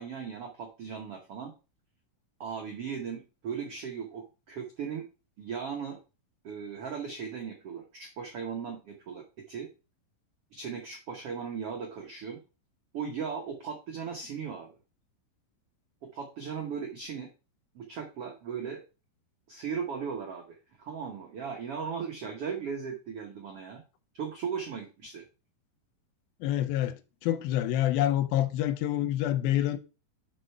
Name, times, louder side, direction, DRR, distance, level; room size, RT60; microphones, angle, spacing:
voice 1, 0.0-1.5 2.4-5.0 5.4-6.0 6.4-9.7 10.5-12.4 12.9-14.7 16.0-17.3 17.7-18.8 19.5-23.8 24.1-25.2, right 6 dB, 85° right, 1.3 m, -37 dB
voice 2, 26.4-29.8, left 12 dB, 80° left, 2.4 m, -27 dB
6.4 x 5.4 x 4.4 m
omnidirectional pair, 4.4 m